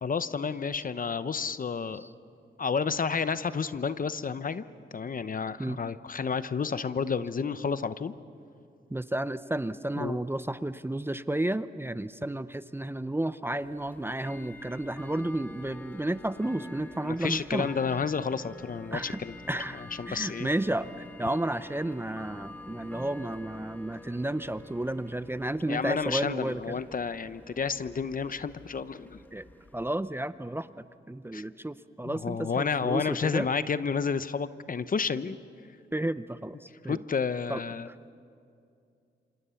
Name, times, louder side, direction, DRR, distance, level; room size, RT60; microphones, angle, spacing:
voice 1, 0.0-2.1 2.6-4.6 4.9-8.1 10.0-10.2 17.0-19.3 20.0-20.5 25.7-29.2 31.3-31.4 32.0-35.4 36.9-37.9, left 5 dB, 45° left, 13 dB, 0.8 m, -30 dB
voice 2, 8.9-17.7 18.9-19.2 19.5-26.8 29.3-29.5 29.7-33.5 35.9-37.1 37.5-37.6, right 1 dB, 10° right, 13 dB, 0.7 m, -32 dB
Bell / Tick-tock, 13.5-29.9, left 1 dB, 10° left, 1.5 m, -48 dB
26.5 x 26.5 x 7.1 m, 2.5 s
cardioid pair, 80°, 20 cm